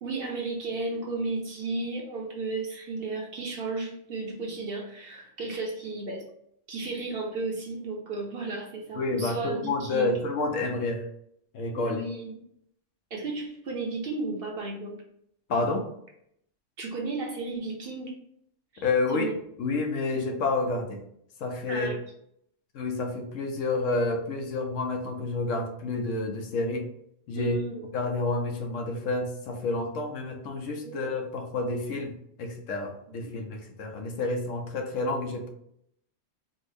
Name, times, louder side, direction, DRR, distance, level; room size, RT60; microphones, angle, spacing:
voice 1, 0.0-6.2 6.7-10.2 11.8-12.4 13.1-15.0 16.8-18.1 18.7-18.9 19.1-19.4 20.1-20.4 21.7-22.0 27.3-27.9 30.8-31.0 33.2-33.3, right 3 dB, 55° right, -1 dB, 0.8 m, -34 dB
voice 2, 9.0-11.0 11.5-12.0 15.5-15.9 18.8-21.0 21.4-21.9 22.7-26.9 27.3-27.6 27.9-32.1 32.4-35.5, left 3 dB, 75° left, 3 dB, 1.0 m, -29 dB
4.3 x 2.0 x 3.2 m, 0.72 s
omnidirectional pair, 1.3 m